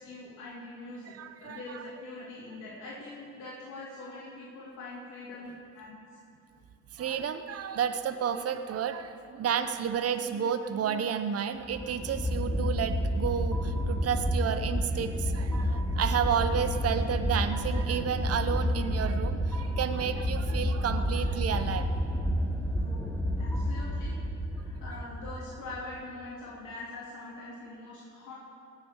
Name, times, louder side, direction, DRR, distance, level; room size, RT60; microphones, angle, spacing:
voice 1, 0.0-1.1 1.4-6.0 22.8-24.2 24.5-28.3, left 2 dB, 80° left, -7 dB, 2.9 m, -43 dB
voice 2, 1.2-1.6 6.9-21.9, right 8 dB, 50° right, 9 dB, 0.8 m, -31 dB
sound 1, 11.6-25.8, equal, 5° left, 1.4 m, -30 dB
18.0 x 6.7 x 7.2 m, 2.5 s
cardioid pair, 90°, 30 cm